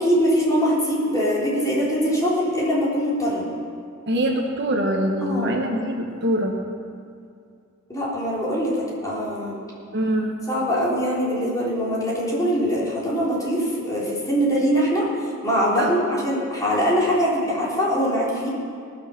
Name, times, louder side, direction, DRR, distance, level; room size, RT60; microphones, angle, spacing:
voice 1, 0.0-3.4 5.2-5.5 7.9-9.6 10.5-15.1 15.4-18.5, equal, 15° left, -6 dB, 3.6 m, -22 dB
voice 2, 4.1-6.6 9.9-10.4 15.8-15.9, right 1 dB, 60° right, 2 dB, 1.3 m, -23 dB
19.0 x 6.7 x 6.9 m, 2.3 s
head